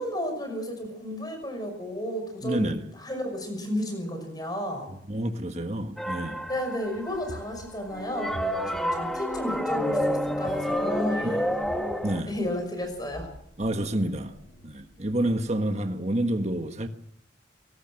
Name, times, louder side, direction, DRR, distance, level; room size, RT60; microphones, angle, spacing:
voice 1, 0.0-4.9 6.5-11.6 12.3-13.3, equal, 20° left, 5.8 m, -32 dB
voice 2, 2.4-2.8 5.1-6.4 11.2-11.3 12.0-12.3 13.6-14.3 14.6-16.9, right 1 dB, 35° right, 1.4 m, -28 dB
sound 1, 6.0-7.3 7.9-12.2, equal, ahead, 1.3 m, -29 dB
sound 2, 6.2-15.5, left 1 dB, 70° left, 5.4 m, -48 dB
23.0 x 18.5 x 6.4 m
head